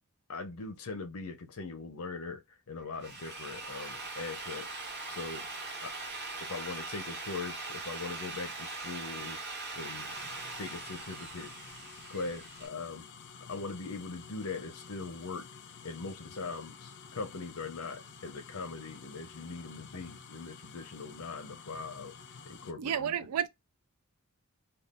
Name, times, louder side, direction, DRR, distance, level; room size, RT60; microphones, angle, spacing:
voice 1, 0.3-4.7 5.1-5.5 5.8-6.0 6.4-9.4 9.7-10.2 10.6-11.5 12.1-13.1 13.5-15.5 15.8-22.1 22.4-23.2, left 4 dB, 75° left, 0.7 m, -41 dB
Drill, 2.8-12.7, right 3 dB, 50° right, 1.0 m, -41 dB
sound 1, 10.1-22.7, left 6 dB, 50° left, 0.4 m, -51 dB
voice 2, 22.8-23.5, right 9 dB, 80° right, 0.4 m, -31 dB
3.6 x 2.4 x 2.4 m
head